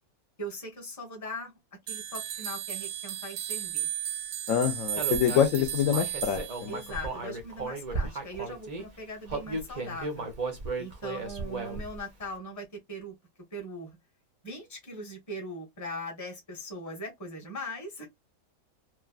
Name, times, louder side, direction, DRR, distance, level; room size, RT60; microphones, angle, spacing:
voice 1, 0.4-1.5 1.9-3.9 5.1-5.2 6.7-10.3 10.8-13.1 13.5-14.0 14.4-18.1, equal, 15° left, 0.8 m, -40 dB
sound 1, 1.9-7.1, right 11 dB, 85° right, 1.2 m, -35 dB
voice 2, 4.5-6.8, left 9 dB, 70° left, 0.8 m, -26 dB
Human voice, 5.0-8.8 9.3-12.0, right 3 dB, 65° right, 0.4 m, -35 dB
3.0 x 2.4 x 2.3 m
omnidirectional pair, 1.9 m